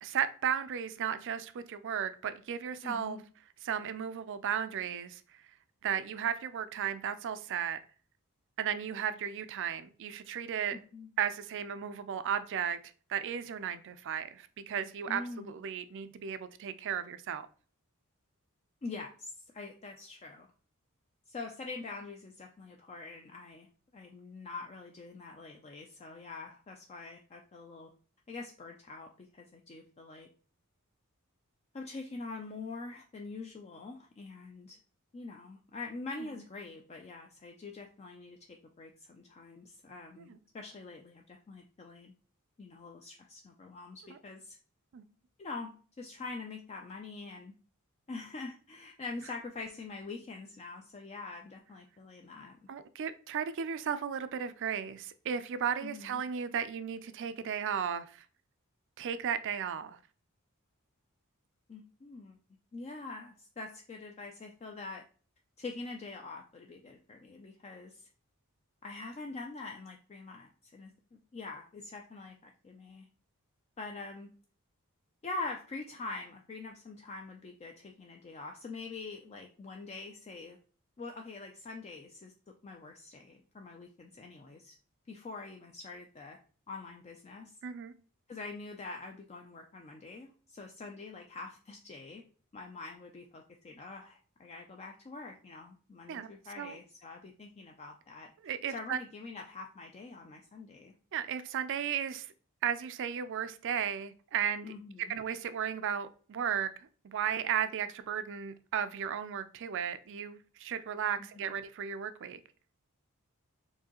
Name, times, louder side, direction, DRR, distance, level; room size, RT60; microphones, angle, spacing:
voice 1, 0.0-3.2 3.6-5.2 5.8-7.8 8.6-10.8 11.2-12.8 13.1-17.5 36.2-36.3 40.3-40.4 44.1-44.2 44.9-45.0 52.7-58.2 59.0-60.0 87.6-87.9 96.1-96.3 96.6-96.8 98.4-99.0 101.1-102.3 102.6-104.7 105.1-106.7 107.0-112.4, right 8 dB, 55° right, 0.4 m, -35 dB
voice 2, 2.8-3.2 10.7-11.1 15.1-15.5 18.8-20.5 21.3-23.7 23.9-27.9 28.3-30.3 31.7-34.8 35.1-42.1 42.6-44.6 45.4-47.5 48.1-52.6 55.8-56.2 61.7-62.4 62.7-65.0 65.6-68.1 68.8-73.1 73.8-74.3 75.2-80.6 81.0-82.3 82.6-84.8 85.1-86.4 86.7-87.5 88.3-92.2 92.5-98.3 98.7-100.9 104.6-105.2 111.2-111.6, left 3 dB, 30° left, 0.4 m, -45 dB
4.6 x 2.7 x 2.9 m
head